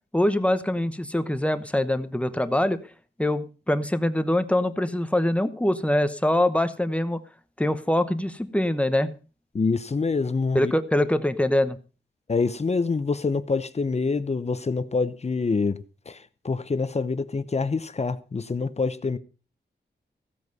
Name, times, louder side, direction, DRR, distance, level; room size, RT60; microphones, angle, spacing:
voice 1, 0.1-2.8 3.2-7.2 7.6-9.1 10.5-11.8, left 1 dB, 5° left, 1.0 m, -24 dB
voice 2, 9.5-10.7 12.3-15.8 16.1-16.2 16.4-19.2, left 4 dB, 35° left, 0.8 m, -26 dB
15.5 x 8.1 x 5.3 m
wide cardioid pair, 125°, 19 cm